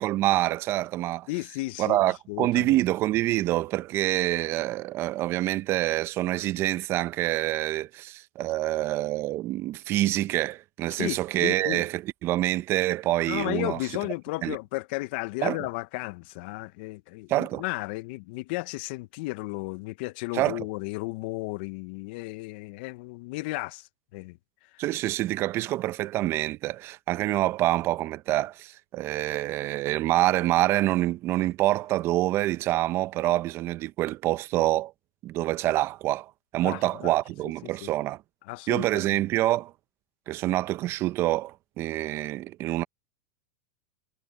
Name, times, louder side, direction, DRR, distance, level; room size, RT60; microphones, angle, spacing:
voice 1, 0.0-1.3 1.8-13.8 14.4-14.6 15.4-15.6 17.3-17.6 20.3-20.6 24.8-34.9 35.2-38.2 38.7-39.7 40.3-42.8, right 16 dB, 40° right, 0.9 m, -26 dB
voice 2, 1.3-2.8 11.0-11.9 13.3-24.8 36.6-37.1 37.6-37.9 38.4-39.2, left 23 dB, 60° left, 1.1 m, -34 dB
hypercardioid pair, 110°, 6 cm